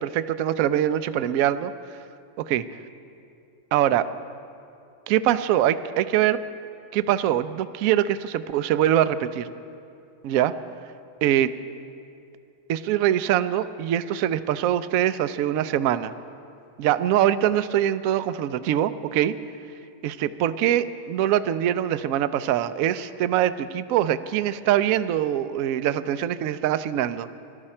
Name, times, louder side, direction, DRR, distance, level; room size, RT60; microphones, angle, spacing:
voice 1, 0.0-1.7 2.4-2.6 3.7-4.1 5.1-6.4 6.9-9.5 10.2-10.5 11.2-11.5 12.7-16.1 16.8-19.3 20.0-27.3, right 11 dB, 70° right, 13 dB, 0.8 m, -23 dB
19.5 x 12.5 x 4.4 m, 2.6 s
omnidirectional pair, 1.8 m